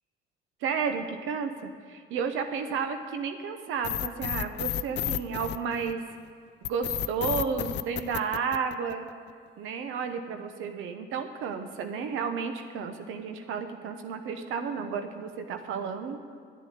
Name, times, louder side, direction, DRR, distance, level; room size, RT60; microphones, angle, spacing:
voice 1, 0.6-6.0 6.6-9.1 9.6-16.2, right 6 dB, 85° right, 7 dB, 0.9 m, -32 dB
sound 1, 3.8-6.1 6.6-9.1, left 12 dB, 60° left, 0.4 m, -31 dB
11.5 x 7.3 x 9.3 m, 2.1 s
cardioid pair, 90°, 20 cm